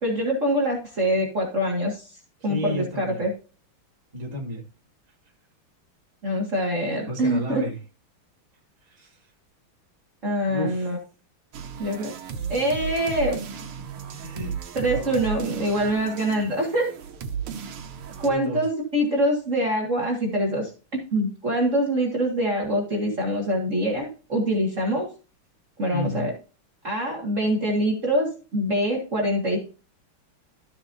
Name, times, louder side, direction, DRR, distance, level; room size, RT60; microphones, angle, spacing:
voice 1, 0.0-2.1 2.4-3.3 6.2-7.6 10.2-11.0 11.8-12.1 12.5-13.4 14.7-16.9 18.2-25.1 25.8-26.3 26.8-29.6, equal, 35° right, -1 dB, 2.3 m, -24 dB
voice 2, 2.4-3.2 4.1-4.6 7.1-7.8 8.8-9.2 10.5-10.9 14.1-15.2 18.2-18.6 25.9-26.3, left 1 dB, 20° right, -2 dB, 2.3 m, -32 dB
sound 1, 11.5-18.3, right 7 dB, 90° right, 2.0 m, -35 dB
13.0 x 7.1 x 2.7 m, 0.34 s
omnidirectional pair, 2.4 m